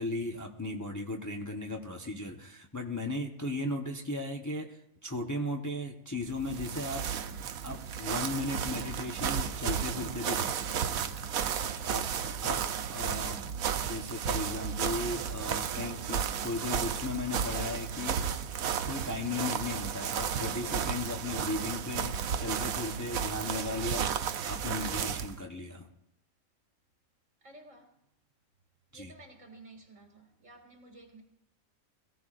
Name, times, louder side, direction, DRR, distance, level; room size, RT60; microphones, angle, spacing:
voice 1, 0.0-7.1 7.6-12.1 12.4-12.6 12.9-18.6 18.9-25.9 28.9-29.1, left 2 dB, 15° left, 0.9 m, -36 dB
sound 1, 6.3-25.4, right 8 dB, 90° right, 1.2 m, -33 dB
voice 2, 27.4-28.0 28.9-31.2, right 2 dB, 65° right, 2.7 m, -53 dB
21.5 x 15.5 x 2.5 m
omnidirectional pair, 1.4 m